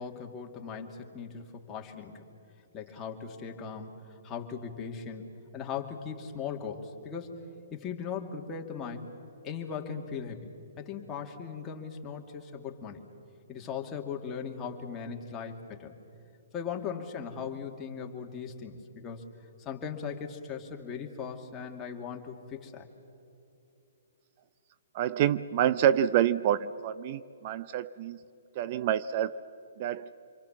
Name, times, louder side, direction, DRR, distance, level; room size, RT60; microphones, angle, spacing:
voice 1, 0.0-2.2 2.7-5.3 5.5-7.4 7.7-9.1 9.4-13.1 13.5-15.9 16.5-19.2 19.6-22.9, left 6 dB, 20° left, 1 dB, 2.4 m, -39 dB
voice 2, 24.9-28.2 28.6-29.4 29.8-30.1, right 10 dB, 40° right, 15 dB, 0.5 m, -27 dB
27.5 x 23.0 x 7.4 m, 2.8 s
hypercardioid pair, 140°, 0 cm